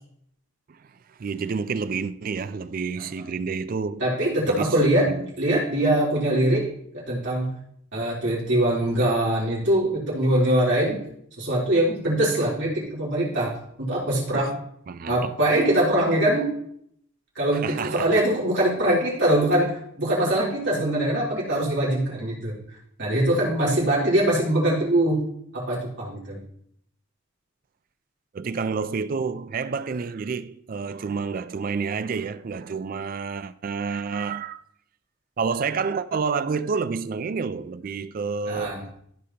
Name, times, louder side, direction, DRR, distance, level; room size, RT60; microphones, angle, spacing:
voice 1, 1.2-4.1 4.5-5.3 14.3-14.6 14.9-15.3 17.5-18.2 28.3-34.6 35.4-38.8, right 5 dB, 40° right, 0.3 m, -29 dB
voice 2, 4.0-7.5 7.9-11.0 11.4-14.5 15.1-16.6 17.3-22.5 23.0-25.2 25.5-26.4 38.4-38.8, right 1 dB, 60° right, 3.4 m, -23 dB
14.0 x 5.0 x 2.8 m
head